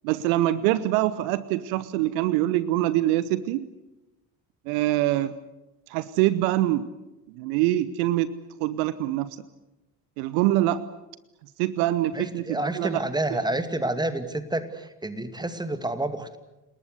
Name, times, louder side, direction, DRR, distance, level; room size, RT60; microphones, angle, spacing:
voice 1, 0.0-3.7 4.7-5.4 5.9-6.9 7.3-8.3 8.6-9.4 10.2-10.8 11.6-13.0 13.3-13.4, right 14 dB, 60° right, 17 dB, 1.0 m, -24 dB
voice 2, 12.1-16.4, right 1 dB, 10° right, 10 dB, 2.4 m, -29 dB
29.0 x 19.5 x 8.1 m, 0.99 s
figure-of-eight pair, 50°, 49 cm